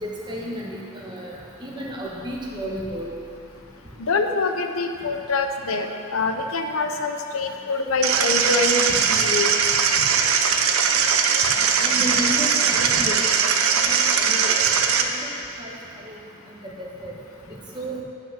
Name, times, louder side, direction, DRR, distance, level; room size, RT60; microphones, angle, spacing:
voice 1, 0.0-3.1 11.5-13.5 13.7-14.5 14.9-15.3 15.6-15.8 16.1-16.2 16.6-17.1 17.7-18.0, equal, 20° right, -3 dB, 1.2 m, -32 dB
voice 2, 4.0-9.6, left 3 dB, 80° left, 5 dB, 0.7 m, -25 dB
sound 1, 8.0-15.0, right 6 dB, 85° right, 0.7 m, -20 dB
11.0 x 6.0 x 5.8 m, 2.6 s
head